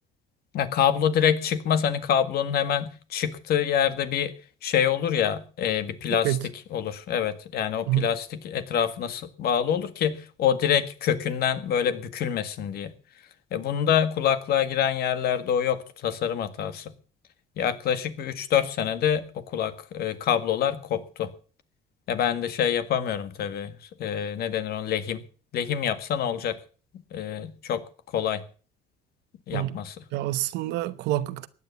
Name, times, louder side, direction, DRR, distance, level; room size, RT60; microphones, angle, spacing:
voice 1, 0.5-4.3 4.6-6.4 6.7-12.9 13.5-16.9 17.6-21.3 22.1-23.7 24.0-25.2 25.5-26.6 27.1-27.8 28.1-28.4 29.5-30.0, left 9 dB, 65° left, 1.8 m, -26 dB
voice 2, 30.1-31.5, right 15 dB, 90° right, 1.0 m, -27 dB
15.5 x 9.9 x 6.9 m
cardioid pair, 110°, 17 cm